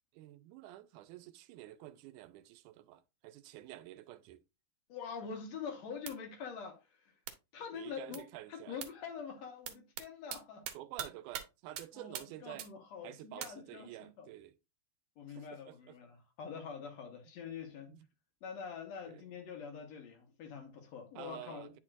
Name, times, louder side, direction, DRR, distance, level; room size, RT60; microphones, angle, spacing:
voice 1, 0.1-4.4 7.7-8.8 10.7-12.7 13.0-14.6 15.3-16.0 17.9-18.1 19.1-19.2 21.2-21.7, right 14 dB, 85° right, 2.1 m, -50 dB
voice 2, 4.9-7.1 7.5-10.7 11.9-14.3 15.2-18.0 18.4-21.7, left 6 dB, 65° left, 2.3 m, -45 dB
sound 1, 6.1-6.2 7.3-7.4 8.1-8.2 8.8-8.9 9.7-10.0 10.3-10.4 10.6-11.1 11.3-11.4 11.8-11.9 12.1-12.2 12.6-12.7 13.4-13.5, right 10 dB, 70° right, 1.9 m, -40 dB
9.4 x 4.4 x 2.5 m
omnidirectional pair, 3.5 m